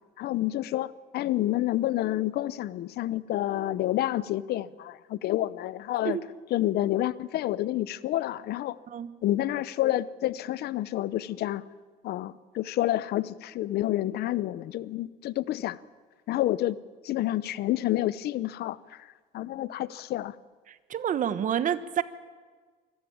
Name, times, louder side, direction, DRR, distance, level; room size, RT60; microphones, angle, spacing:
voice 1, 0.2-6.2 6.5-8.8 9.2-11.6 12.0-15.8 16.3-16.8 17.0-19.1 19.3-20.3, left 14 dB, 70° left, 18 dB, 0.8 m, -29 dB
voice 2, 20.7-22.0, right 9 dB, 50° right, 14 dB, 1.3 m, -28 dB
24.5 x 15.0 x 8.8 m, 1.4 s
cardioid pair, 110°, 17 cm